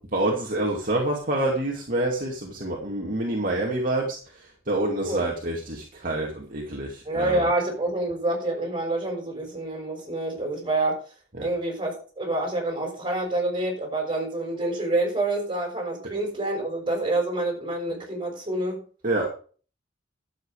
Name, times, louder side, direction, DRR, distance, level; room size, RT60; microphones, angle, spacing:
voice 1, 0.1-4.2 4.7-7.4 11.4-11.5 19.0-19.3, right 1 dB, 45° right, -1 dB, 2.4 m, -27 dB
voice 2, 7.0-11.0 11.4-18.8, right 2 dB, 25° right, 2 dB, 5.7 m, -27 dB
12.0 x 7.8 x 4.9 m, 0.40 s
head